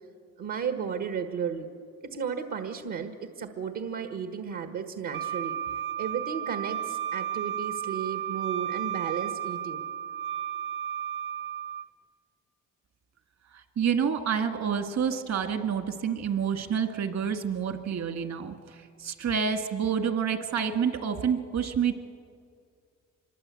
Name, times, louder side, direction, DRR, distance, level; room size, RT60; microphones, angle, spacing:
voice 1, 0.4-1.7 2.0-5.5 6.0-9.8, right 7 dB, 75° right, 7 dB, 1.6 m, -34 dB
Wind instrument woodwind instrument, 5.1-11.9, right 10 dB, 40° right, 0.7 m, -33 dB
voice 2, 13.5-22.0, right 7 dB, 60° right, 7 dB, 2.1 m, -28 dB
25.0 x 22.5 x 8.5 m, 2.2 s
cardioid pair, 90°, 30 cm